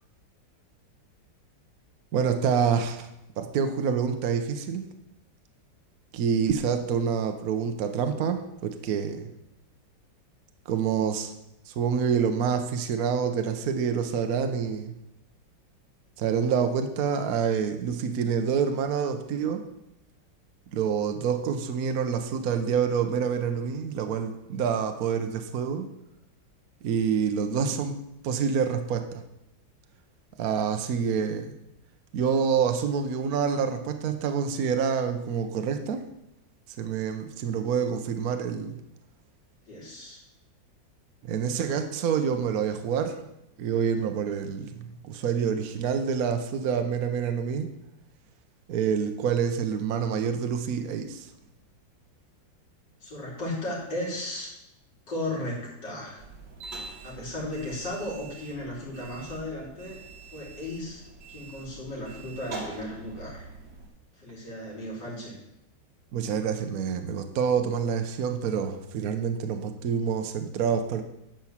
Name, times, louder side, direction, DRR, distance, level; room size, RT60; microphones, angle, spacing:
voice 1, 2.1-3.1 3.4-4.8 6.1-9.3 10.7-11.3 11.7-14.9 16.2-19.6 20.7-25.9 26.8-27.9 28.2-29.2 30.4-31.5 32.1-36.0 36.8-38.8 41.2-43.3 43.6-47.7 48.7-51.3 66.1-71.0, right 7 dB, 60° right, 6 dB, 1.1 m, -27 dB
voice 2, 39.7-40.2 53.0-54.5 55.1-56.2 57.0-60.0 60.3-61.0 61.3-63.5 64.2-65.4, left 1 dB, 70° left, -4 dB, 3.7 m, -35 dB
sound 1, 56.2-63.9, right 4 dB, 75° right, 2.3 m, -44 dB
10.5 x 4.5 x 7.1 m, 0.86 s
omnidirectional pair, 2.0 m